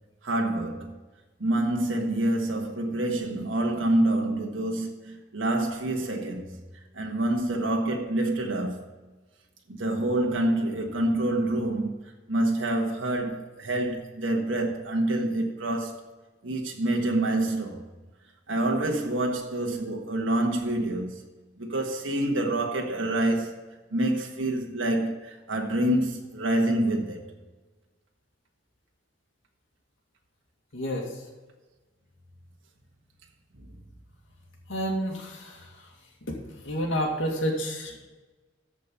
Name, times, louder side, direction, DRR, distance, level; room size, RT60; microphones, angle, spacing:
voice 1, 0.2-1.0 1.4-6.6 6.9-8.8 9.7-12.0 12.3-16.0 16.4-17.9 18.5-21.2 21.6-23.6 23.9-27.3, right 1 dB, 85° right, 1.5 m, -27 dB
voice 2, 30.7-31.2 34.7-35.9 36.2-36.4 36.6-38.1, equal, 85° left, 2.4 m, -30 dB
14.0 x 5.2 x 5.6 m
head